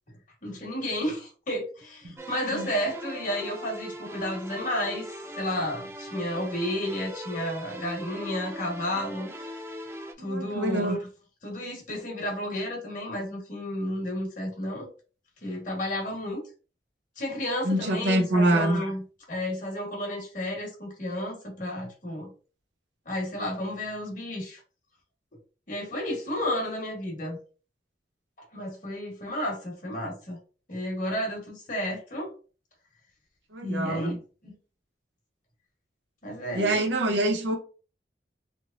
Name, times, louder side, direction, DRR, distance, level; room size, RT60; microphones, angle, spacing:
voice 1, 0.4-9.6 10.2-11.1 11.4-14.9 15.4-16.4 17.2-19.0 19.3-22.3 23.0-24.6 25.7-27.4 28.5-30.4 30.7-32.3 33.6-34.2 34.4-34.5 36.2-36.9, left 1 dB, 45° left, 1.2 m, -32 dB
sound 1, 2.2-10.1, equal, 15° right, 0.3 m, -40 dB
voice 2, 10.2-11.0 17.6-18.8 33.5-34.2 36.5-37.6, right 1 dB, 80° right, 0.8 m, -25 dB
3.3 x 2.9 x 2.5 m
head